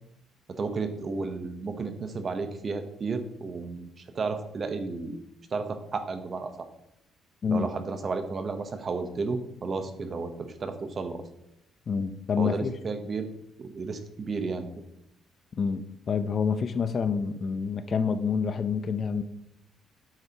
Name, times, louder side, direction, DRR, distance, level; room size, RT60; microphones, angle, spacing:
voice 1, 0.5-5.2 5.5-6.7 7.5-11.2 12.4-13.3 13.6-14.7, right 4 dB, 35° right, 8 dB, 0.9 m, -33 dB
voice 2, 11.9-12.7 15.6-19.2, left 6 dB, 40° left, 11 dB, 0.6 m, -27 dB
9.0 x 7.8 x 2.9 m, 0.82 s
cardioid pair, 110°, 0 cm